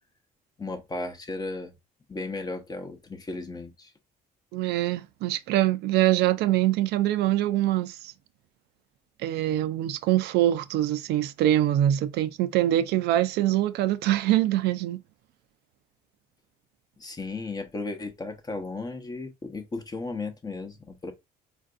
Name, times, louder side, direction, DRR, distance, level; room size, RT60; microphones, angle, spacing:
voice 1, 0.6-1.7 2.1-3.9 17.0-21.1, left 3 dB, 25° left, 0.8 m, -35 dB
voice 2, 4.5-8.1 9.2-15.0, right 13 dB, 80° right, 0.4 m, -24 dB
4.4 x 2.6 x 2.4 m
cardioid pair, 110°, 17 cm